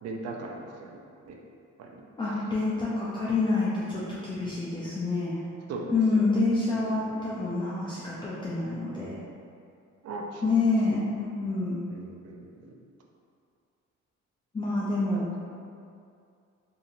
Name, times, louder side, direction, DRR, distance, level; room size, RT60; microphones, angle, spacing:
voice 1, 0.0-1.0 1.3-1.4 1.8-2.1 2.3-2.4 5.7-6.4 6.7-7.3 10.0-10.6 11.9-12.8 15.1-15.2, right 2 dB, 55° right, 0 dB, 0.4 m, -39 dB
voice 2, 2.2-5.3 5.9-9.1 10.4-11.8 14.5-15.2, left 3 dB, 15° left, -9 dB, 0.5 m, -27 dB
2.8 x 2.7 x 2.5 m, 2.4 s
cardioid pair, 90°, 30 cm